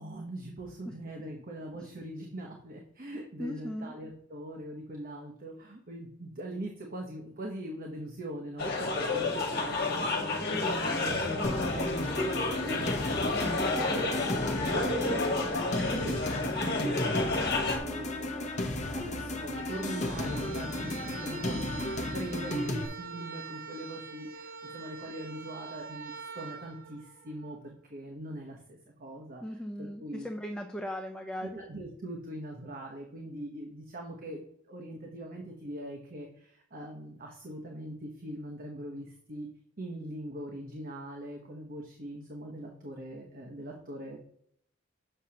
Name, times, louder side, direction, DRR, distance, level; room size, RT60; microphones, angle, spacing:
voice 1, 0.0-30.3 31.4-34.4 34.7-39.5 39.8-44.2, right 1 dB, 45° right, 1 dB, 1.0 m, -42 dB
voice 2, 3.4-3.9 14.9-15.2 29.4-31.6, equal, 5° left, 3 dB, 0.4 m, -38 dB
sound 1, 8.6-17.8, left 2 dB, 50° left, 1.5 m, -30 dB
sound 2, 11.4-22.9, left 1 dB, 35° left, 0.9 m, -34 dB
sound 3, 19.5-27.6, right 5 dB, 90° right, 1.5 m, -44 dB
7.7 x 6.2 x 2.8 m, 0.67 s
head